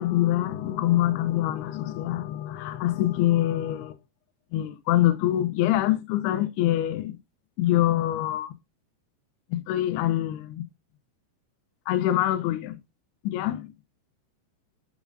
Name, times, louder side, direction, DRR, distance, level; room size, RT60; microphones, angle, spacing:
voice 1, 0.0-3.9 4.5-7.2 7.6-8.5 9.5-10.7 11.9-12.8 13.2-13.7, left 13 dB, 80° left, 2.3 m, -25 dB
9.8 x 5.1 x 2.6 m
omnidirectional pair, 5.5 m